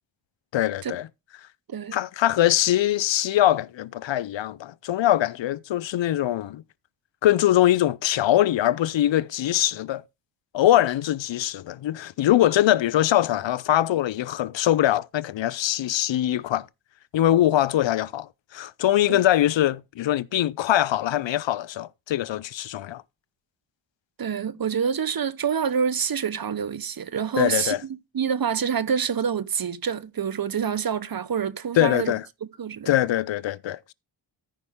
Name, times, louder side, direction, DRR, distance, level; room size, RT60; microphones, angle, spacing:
voice 1, 0.5-1.1 1.9-6.6 7.2-10.0 10.5-16.7 17.1-23.0 27.4-27.8 31.8-32.2 32.9-33.9, left 13 dB, 65° left, 0.5 m, -22 dB
voice 2, 24.2-32.1 32.4-32.9, right 7 dB, 45° right, 0.8 m, -27 dB
14.0 x 5.2 x 3.5 m
cardioid pair, 60°, 49 cm